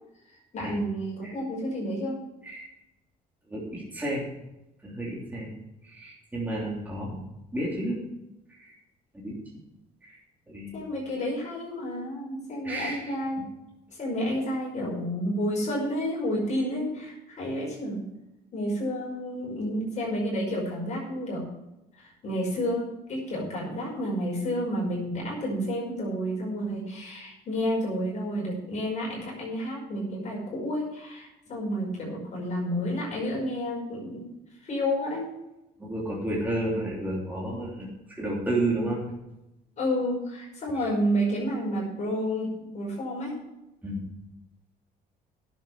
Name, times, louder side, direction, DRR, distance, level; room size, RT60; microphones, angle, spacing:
voice 1, 0.5-2.2 10.7-13.5 14.0-18.0 18.5-21.5 22.0-34.3 34.6-35.3 39.8-43.4, equal, 45° left, -3 dB, 5.5 m, -30 dB
voice 2, 3.5-4.2 4.8-5.5 5.8-7.2 7.5-8.0 8.6-8.7 9.2-9.4 10.0-10.2 10.5-10.8 12.6-13.1 35.8-39.0 43.8-44.0, right 1 dB, 10° right, -4 dB, 3.2 m, -31 dB
11.0 x 7.4 x 7.3 m, 0.93 s
cardioid pair, 110°, 17 cm